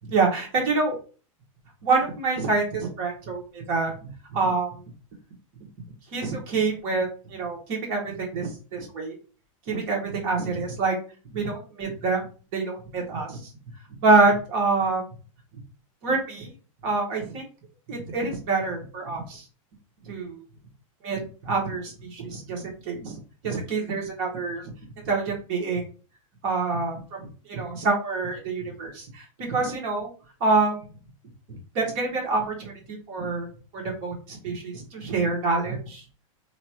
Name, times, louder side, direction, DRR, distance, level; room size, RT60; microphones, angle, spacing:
voice 1, 0.1-0.9 1.8-4.7 6.1-9.2 9.7-10.9 11.3-12.2 12.5-13.4 14.0-15.0 16.0-16.5 16.8-17.4 17.9-19.4 20.0-20.4 21.0-24.6 25.0-25.8 26.4-30.1 30.4-30.8 31.5-33.5 33.7-36.0, right 3 dB, 40° right, 0 dB, 1.2 m, -26 dB
2.9 x 2.3 x 2.9 m, 0.37 s
supercardioid pair, 160°, 18 cm